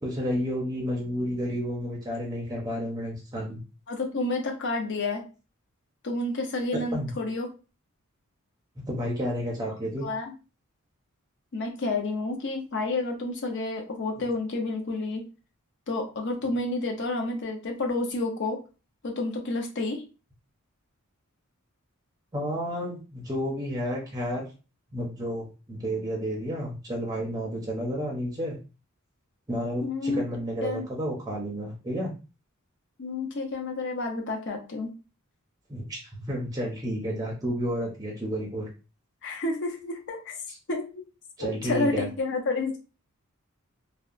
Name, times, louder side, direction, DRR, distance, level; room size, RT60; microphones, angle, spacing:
voice 1, 0.0-3.6 6.9-7.1 8.9-10.1 14.2-14.3 22.3-24.5 24.9-28.6 29.5-32.1 35.7-38.7 41.4-42.1, equal, 15° right, -2 dB, 0.5 m, -31 dB
voice 2, 3.9-5.2 6.0-7.5 10.0-10.3 11.5-15.2 15.9-18.6 19.0-20.0 29.8-30.2 30.6-30.9 33.0-34.9 39.2-40.4 40.7-41.0 41.4-42.8, left 2 dB, 55° left, 3 dB, 0.6 m, -30 dB
2.7 x 2.0 x 2.4 m, 0.33 s
head